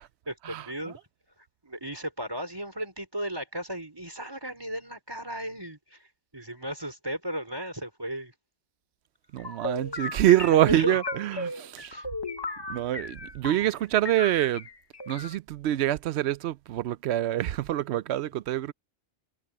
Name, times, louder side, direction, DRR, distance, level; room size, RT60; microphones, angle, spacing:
voice 1, 0.3-1.0 1.6-6.1 6.3-8.3 10.5-11.0 11.9-12.1, right 1 dB, 20° right, 4.6 m, -35 dB
voice 2, 9.3-12.0 12.7-14.7 15.1-18.7, right 13 dB, 70° right, 0.8 m, -25 dB
sound 1, 9.4-13.8 14.0-15.4, left 2 dB, 25° left, 0.9 m, -36 dB
omnidirectional pair, 1.2 m